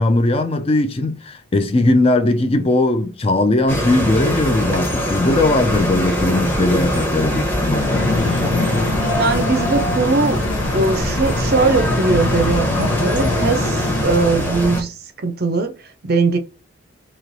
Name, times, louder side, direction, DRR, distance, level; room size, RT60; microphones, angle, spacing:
voice 1, 0.0-8.4, left 2 dB, 30° left, 0.4 m, -19 dB
sound 1, 3.7-14.8, equal, 10° left, 0.8 m, -22 dB
sound 2, 7.9-14.0, left 3 dB, 70° left, 0.7 m, -24 dB
voice 2, 9.2-10.4 10.7-16.4, right 3 dB, 50° right, 0.5 m, -20 dB
3.1 x 2.9 x 4.0 m
head